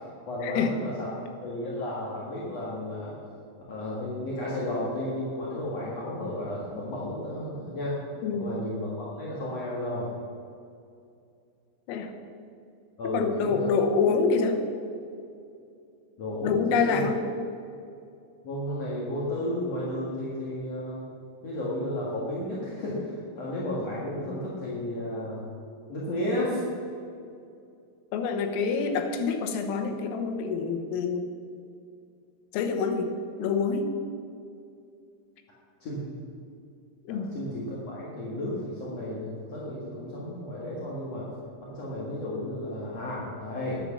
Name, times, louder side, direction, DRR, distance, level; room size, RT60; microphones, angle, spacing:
voice 1, 0.0-3.1 3.7-8.0 8.4-10.1 13.0-13.8 16.2-17.1 18.4-21.0 21.4-25.4 25.9-26.6 35.8-36.2 37.1-41.3 41.7-43.8, left 1 dB, 55° left, -6 dB, 1.8 m, -33 dB
voice 2, 13.0-14.6 16.4-17.2 28.1-31.4 32.5-33.1 33.4-33.9 37.1-37.3, left 5 dB, 85° left, 5 dB, 3.7 m, -26 dB
10.5 x 10.5 x 7.1 m, 2.5 s
omnidirectional pair, 5.8 m